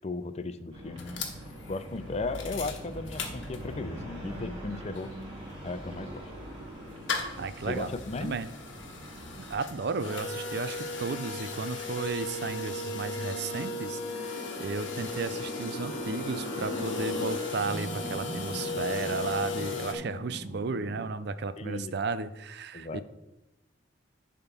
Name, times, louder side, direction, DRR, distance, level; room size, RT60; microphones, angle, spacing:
voice 1, 0.0-1.3 1.7-5.1 5.6-6.2 7.7-8.4 21.6-21.9 22.7-23.0, left 3 dB, 35° left, 12 dB, 0.4 m, -36 dB
sound 1, 0.7-9.6, equal, 30° right, 2.0 m, -43 dB
sound 2, 1.0-4.0 4.4-4.5 4.6-19.9, left 3 dB, 80° left, 1.3 m, -37 dB
voice 2, 7.4-7.9 8.2-8.5 9.5-23.0, right 4 dB, 60° right, 13 dB, 0.5 m, -34 dB
sound 3, 8.5-21.0, left 1 dB, 10° left, 1.6 m, -42 dB
10.5 x 3.7 x 5.9 m, 0.97 s
head